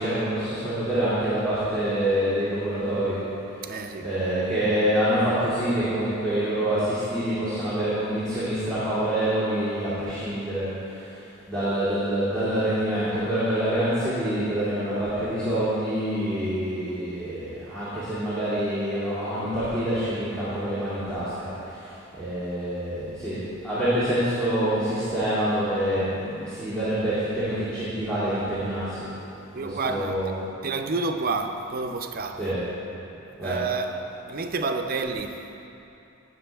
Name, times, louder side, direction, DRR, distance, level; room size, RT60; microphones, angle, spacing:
voice 1, 0.0-3.2 4.0-11.2 11.5-29.1 29.6-30.3 32.4-32.6 33.4-33.6, right 1 dB, 5° left, 2.4 m, -26 dB
voice 2, 3.6-4.1 29.5-32.6 33.4-34.0 34.3-35.5, right 3 dB, 45° right, 0.6 m, -29 dB
17.5 x 6.3 x 3.5 m
head